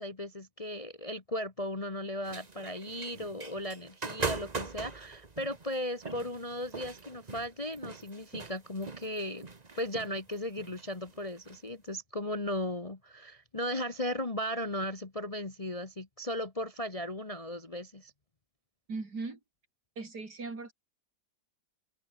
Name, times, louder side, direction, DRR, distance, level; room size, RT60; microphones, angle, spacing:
voice 1, 0.0-9.4 9.8-18.1, left 1 dB, 20° left, 1.4 m, -36 dB
sound 1, 2.2-11.6, right 3 dB, 20° right, 1.5 m, -41 dB
voice 2, 18.9-19.4 20.0-20.7, right 3 dB, 55° right, 4.3 m, -38 dB
open air
omnidirectional pair, 2.1 m